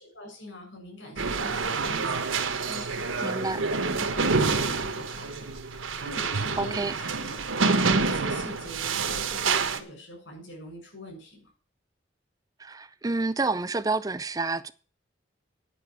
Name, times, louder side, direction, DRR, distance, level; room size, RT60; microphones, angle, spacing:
voice 1, 0.0-11.5, left 1 dB, 75° left, 6.7 m, -43 dB
sound 1, 1.2-9.8, right 4 dB, 85° right, 1.2 m, -27 dB
voice 2, 3.2-3.6 6.6-6.9 12.6-14.7, right 3 dB, 20° right, 0.4 m, -28 dB
10.0 x 5.9 x 8.6 m
head